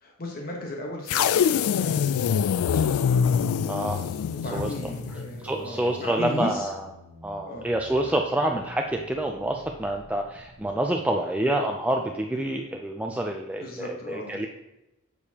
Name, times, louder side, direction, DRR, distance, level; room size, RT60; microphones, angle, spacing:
voice 1, 0.0-1.4 1.7-3.1 4.3-6.7 7.5-7.7 11.4-11.5 12.3-12.5 13.6-14.4, left 1 dB, 45° left, 0 dB, 1.1 m, -36 dB
sound 1, 1.1-5.4, left 7 dB, 80° left, 0.3 m, -24 dB
voice 2, 3.7-4.0 4.5-4.9 5.4-6.9 7.2-14.5, right 1 dB, 5° right, 2 dB, 0.4 m, -27 dB
sound 2, 4.0-10.7, right 2 dB, 85° right, 0.9 m, -46 dB
8.2 x 6.8 x 2.8 m, 0.92 s
head